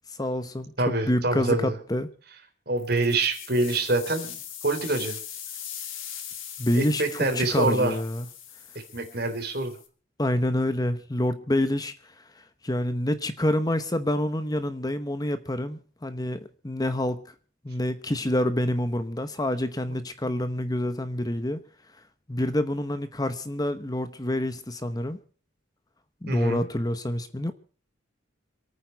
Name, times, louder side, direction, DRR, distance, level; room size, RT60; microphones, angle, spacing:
voice 1, 0.1-2.1 6.6-8.3 10.2-17.2 17.6-21.6 22.3-25.2 26.2-27.5, left 1 dB, 20° left, 0.9 m, -27 dB
voice 2, 0.8-1.8 2.7-5.2 6.7-8.0 8.9-9.7 19.9-20.0 26.3-26.7, right 2 dB, 55° right, 3.7 m, -26 dB
sound 1, 2.8-9.9, left 9 dB, 90° left, 2.7 m, -40 dB
27.0 x 9.4 x 4.6 m
head